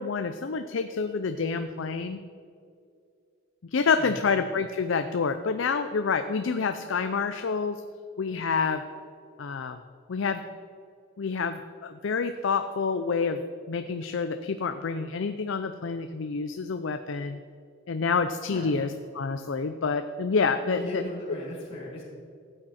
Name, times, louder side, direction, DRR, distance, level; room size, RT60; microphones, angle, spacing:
voice 1, 0.0-2.2 3.7-7.8 8.2-8.8 9.4-9.8 10.1-10.4 11.2-13.4 13.7-17.4 17.9-18.9 19.1-21.0, left 5 dB, 70° left, 9 dB, 0.5 m, -28 dB
voice 2, 20.6-22.0, left 1 dB, 25° left, -9 dB, 3.0 m, -37 dB
14.5 x 8.8 x 4.3 m, 2.4 s
head